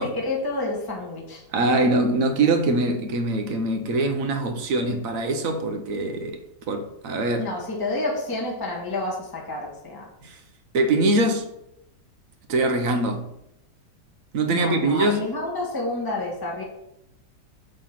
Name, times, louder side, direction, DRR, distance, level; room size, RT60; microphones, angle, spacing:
voice 1, 0.0-1.4 7.4-10.1 14.4-16.6, left 2 dB, 15° left, 1.3 m, -29 dB
voice 2, 1.5-6.4 6.7-7.5 10.2-10.4 10.7-11.5 12.5-13.3 14.3-15.2, right 2 dB, 55° right, 1.2 m, -23 dB
8.5 x 3.4 x 5.8 m
omnidirectional pair, 1.9 m